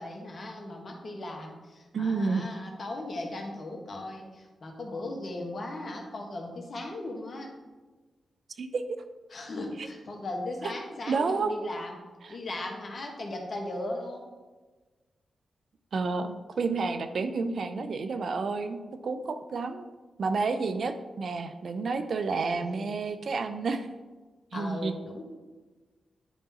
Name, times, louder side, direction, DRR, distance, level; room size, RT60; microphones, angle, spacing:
voice 1, 0.0-7.5 9.3-12.0 12.3-14.3 22.4-22.9 24.5-25.2, left 1 dB, 55° left, 1 dB, 1.6 m, -37 dB
voice 2, 1.9-2.5 8.6-8.8 11.1-11.5 12.2-12.4 15.9-18.8 19.0-19.8 20.2-23.9 24.5-24.9, right 4 dB, 65° right, 9 dB, 0.5 m, -30 dB
10.0 x 3.6 x 4.2 m, 1.3 s
supercardioid pair, 40°, 0 cm